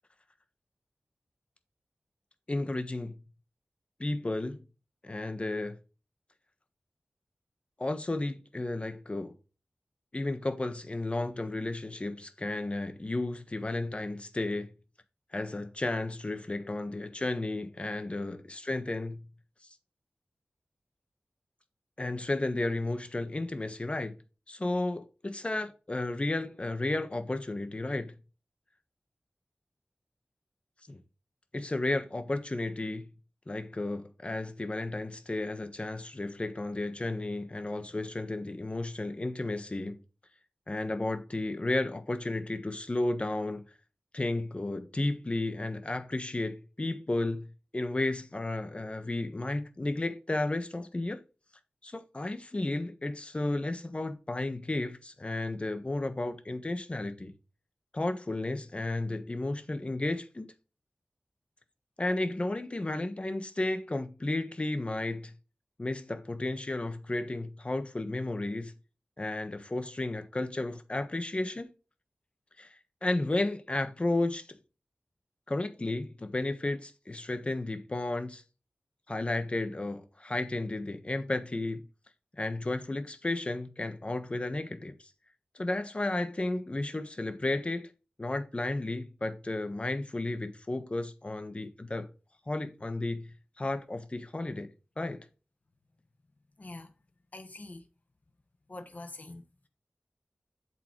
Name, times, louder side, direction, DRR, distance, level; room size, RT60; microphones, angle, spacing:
voice 1, 2.5-3.2 4.0-4.6 5.0-5.8 7.8-9.4 10.1-14.7 15.3-19.2 22.0-24.1 24.5-28.2 30.9-31.0 31.5-33.1 33.5-40.0 40.7-43.6 44.1-51.2 51.8-57.3 57.9-60.5 62.0-65.3 65.8-68.7 69.2-71.7 72.6-74.6 75.5-78.4 79.1-81.8 82.4-85.0 85.5-87.9 88.2-92.1 92.5-94.7 95.0-95.3, left 2 dB, 30° left, 1.3 m, -33 dB
voice 2, 96.6-96.9 97.3-97.8 98.7-99.7, left 2 dB, 50° left, 1.4 m, -45 dB
8.2 x 6.9 x 3.1 m
wide cardioid pair, 90°, 4 cm